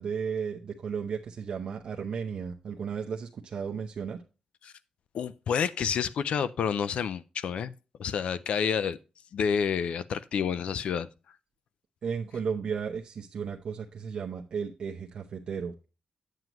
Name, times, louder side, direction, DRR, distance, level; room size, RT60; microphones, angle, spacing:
voice 1, 0.0-4.2 12.0-15.7, right 6 dB, 55° right, 0.7 m, -34 dB
voice 2, 5.1-7.7 8.0-9.0 9.3-11.1, left 7 dB, 65° left, 0.4 m, -29 dB
9.1 x 7.6 x 3.0 m
wide cardioid pair, 140°, 2 cm